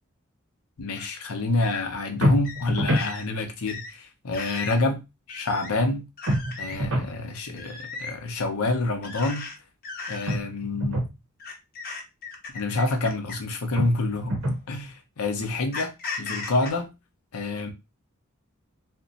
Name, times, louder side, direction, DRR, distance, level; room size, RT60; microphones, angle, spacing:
voice 1, 0.8-5.0 5.3-6.1 6.6-9.5 10.1-11.0 12.5-14.4 14.7-16.9 17.3-17.7, left 2 dB, 80° left, 0.7 m, -27 dB
sound 1, 1.0-1.1 1.6-1.8 2.4-2.7 3.0-3.2 3.7-3.9 4.3-4.8 5.3-5.7 6.2-6.8 7.6-8.2 9.0-9.5 9.8-10.4 11.4-13.5 14.4-14.6 15.7-16.7, left 4 dB, 45° left, 0.8 m, -36 dB
sound 2, 2.2-3.1 6.3-7.2 10.3-11.2 13.8-14.7, equal, 65° right, 0.7 m, -26 dB
2.5 x 2.1 x 3.8 m
head